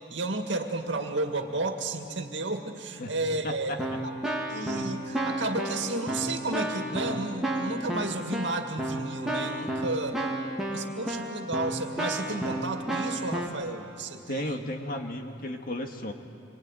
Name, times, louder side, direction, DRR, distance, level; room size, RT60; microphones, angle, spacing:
voice 1, 0.1-4.1 4.5-10.2 10.7-14.6, right 2 dB, 70° right, 4 dB, 2.2 m, -32 dB
Keyboard (musical), 3.3-3.4 3.8-13.5, right 1 dB, 5° right, 2.4 m, -32 dB
voice 2, 3.4-4.0 14.3-16.1, left 1 dB, 50° left, 4 dB, 2.0 m, -34 dB
26.0 x 23.5 x 9.2 m, 2.5 s
head